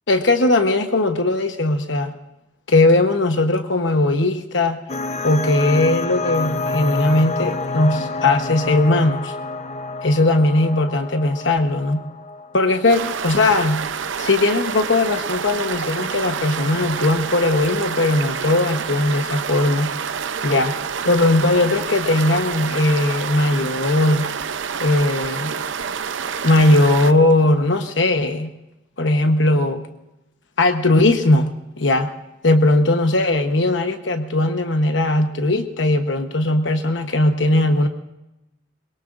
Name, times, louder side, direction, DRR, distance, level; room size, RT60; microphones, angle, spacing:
voice 1, 0.1-2.1 2.7-4.8 5.2-9.4 10.0-12.0 12.5-13.8 14.2-19.9 20.4-20.8 21.0-24.3 24.8-25.5 26.4-28.5 29.0-29.8 30.6-31.5 31.8-32.1 32.4-37.9, left 2 dB, 80° left, 6 dB, 1.1 m, -18 dB
sound 1, 4.9-13.2, left 3 dB, 35° left, 0.6 m, -28 dB
sound 2, 12.9-27.1, right 6 dB, 90° right, 0.7 m, -28 dB
24.5 x 22.0 x 2.6 m, 0.95 s
head